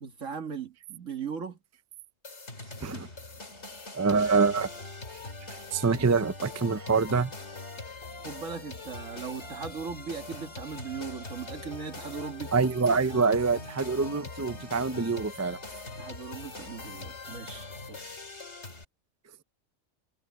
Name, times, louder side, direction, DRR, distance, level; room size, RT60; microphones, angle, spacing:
voice 1, 0.0-1.6 8.2-12.5 16.0-18.1, right 6 dB, 70° right, 2.1 m, -38 dB
sound 1, 2.2-18.8, left 3 dB, 60° left, 3.0 m, -42 dB
voice 2, 3.9-4.7 5.7-7.3 12.5-15.6, right 4 dB, 25° right, 0.3 m, -25 dB
omnidirectional pair, 1.4 m